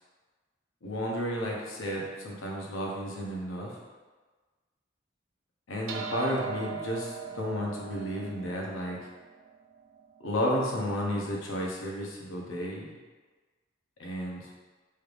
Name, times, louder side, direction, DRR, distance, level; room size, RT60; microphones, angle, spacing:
voice 1, 0.8-3.7 5.7-9.0 10.2-12.9 14.0-14.5, equal, 90° left, -2 dB, 0.7 m, -32 dB
sound 1, 5.9-10.5, right 6 dB, 85° right, 0.4 m, -40 dB
3.2 x 3.2 x 2.5 m, 1.3 s
head